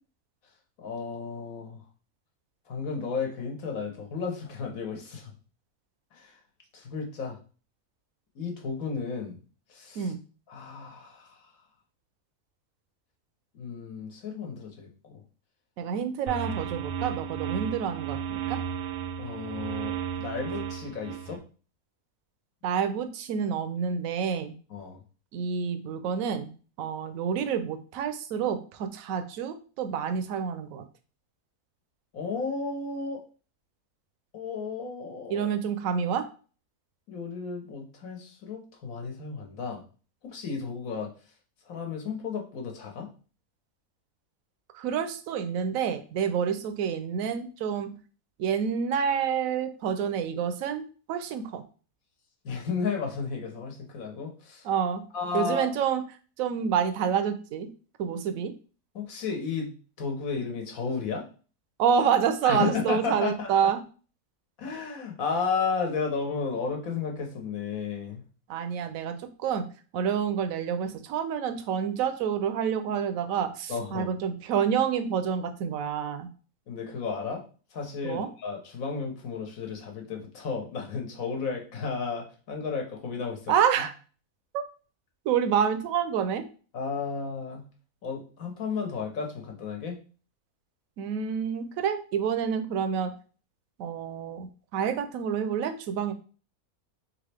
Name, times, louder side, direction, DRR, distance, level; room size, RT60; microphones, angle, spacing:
voice 1, 0.8-1.8 2.7-5.3 6.1-6.4 6.7-7.4 8.3-9.4 9.7-10.1 10.5-11.5 13.5-15.2 19.2-21.4 24.7-25.0 32.1-33.2 34.3-35.5 37.1-39.8 40.2-41.1 41.7-43.1 52.4-54.6 55.1-55.7 58.9-59.7 60.0-61.2 62.4-63.7 64.6-68.2 73.7-74.1 76.7-77.4 77.7-83.5 86.7-87.7 88.0-90.0, left 5 dB, 65° left, 2 dB, 1.4 m, -33 dB
voice 2, 15.8-18.6 22.6-24.5 25.3-26.5 26.8-30.8 35.3-36.3 44.7-47.9 48.4-51.6 54.6-55.0 55.3-56.0 56.4-57.7 58.0-58.5 61.8-63.8 68.5-69.2 69.4-69.6 69.9-76.3 78.0-78.3 83.5-83.9 84.5-84.6 85.3-86.4 91.0-93.1 93.8-96.1, right 7 dB, 70° right, 9 dB, 1.0 m, -28 dB
sound 1, 16.3-21.4, right 8 dB, 90° right, 1.2 m, -34 dB
4.1 x 3.7 x 3.4 m, 0.38 s
omnidirectional pair, 1.6 m